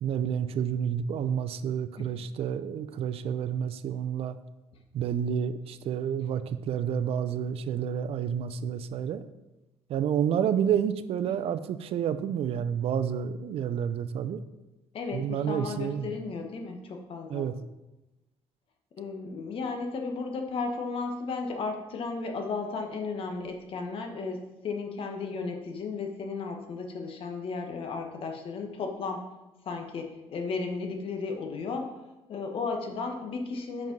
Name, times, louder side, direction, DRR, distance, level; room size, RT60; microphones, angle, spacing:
voice 1, 0.0-4.4 4.9-9.2 9.9-14.4 15.1-16.1 17.3-17.6, right 8 dB, 60° right, 12 dB, 0.5 m, -29 dB
voice 2, 14.9-17.5 19.0-29.2 29.6-32.0 32.3-33.9, left 4 dB, 55° left, 4 dB, 1.3 m, -34 dB
6.0 x 5.2 x 5.3 m, 1.0 s
cardioid pair, 105°, 11 cm